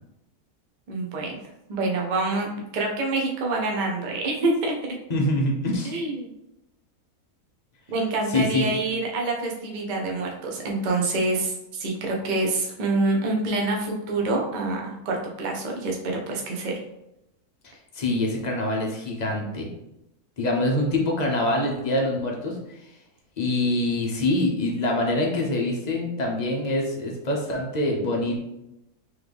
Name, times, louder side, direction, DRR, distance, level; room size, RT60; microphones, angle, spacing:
voice 1, 0.9-1.3 1.7-4.7 5.8-6.3 7.9-16.8, right 2 dB, 45° right, 0 dB, 0.6 m, -26 dB
voice 2, 5.1-5.9 8.3-8.7 17.6-19.7 20.4-22.9 23.4-28.4, left 1 dB, 45° left, 0 dB, 0.5 m, -25 dB
3.8 x 3.1 x 3.4 m, 0.87 s
omnidirectional pair, 1.7 m